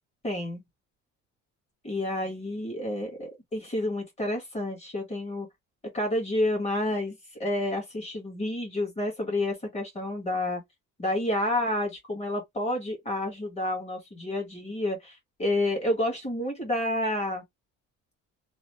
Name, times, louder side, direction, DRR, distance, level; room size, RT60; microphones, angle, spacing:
voice 1, 0.2-0.6 1.8-5.5 5.9-10.6 11.0-17.4, left 1 dB, 20° left, 1.5 m, -29 dB
3.1 x 2.0 x 3.0 m
cardioid pair, 160°, 30 cm